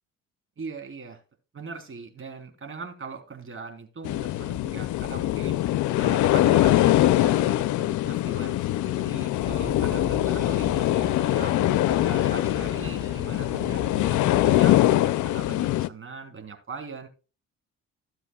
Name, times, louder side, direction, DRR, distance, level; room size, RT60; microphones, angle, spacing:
voice 1, 0.6-1.2 1.5-5.6 6.0-11.6 11.9-17.1, right 4 dB, 45° right, 5 dB, 3.7 m, -40 dB
sound 1, 4.1-15.9, left 14 dB, 80° left, 0.5 m, -23 dB
sound 2, 9.4-14.6, right 2 dB, 10° right, 1.2 m, -39 dB
17.0 x 7.6 x 2.3 m, 0.32 s
cardioid pair, 90°, 30 cm